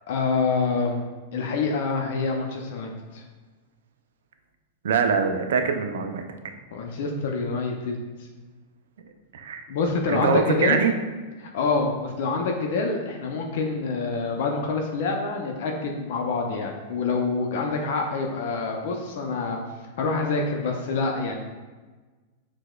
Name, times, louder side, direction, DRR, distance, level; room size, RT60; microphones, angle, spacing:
voice 1, 0.1-1.0 1.3-3.2 6.7-8.0 9.7-10.8 11.4-19.6 20.0-21.3, left 4 dB, 65° left, 2 dB, 0.4 m, -26 dB
voice 2, 4.8-6.2 9.3-9.6 10.1-10.9, right 5 dB, 75° right, 6 dB, 0.3 m, -23 dB
4.5 x 2.0 x 2.2 m, 1.3 s
hypercardioid pair, 105°, 0 cm